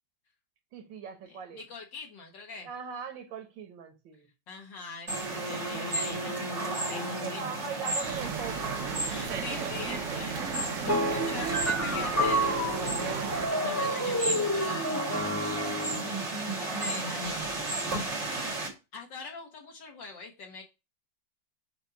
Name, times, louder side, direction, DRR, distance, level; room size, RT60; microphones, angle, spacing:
voice 1, 0.7-1.7 2.6-4.3 7.2-9.1, right 6 dB, 85° right, 1.9 m, -40 dB
voice 2, 1.3-2.7 4.5-7.5 9.1-10.7 11.1-15.1 16.3-18.1 18.9-20.6, left 4 dB, 70° left, 2.0 m, -43 dB
sound 1, 5.1-18.7, right 2 dB, 40° right, 2.4 m, -34 dB
sound 2, 8.0-13.5, right 6 dB, 55° right, 0.9 m, -35 dB
sound 3, 10.9-16.1, equal, 20° left, 0.4 m, -30 dB
7.4 x 2.7 x 5.7 m
omnidirectional pair, 2.0 m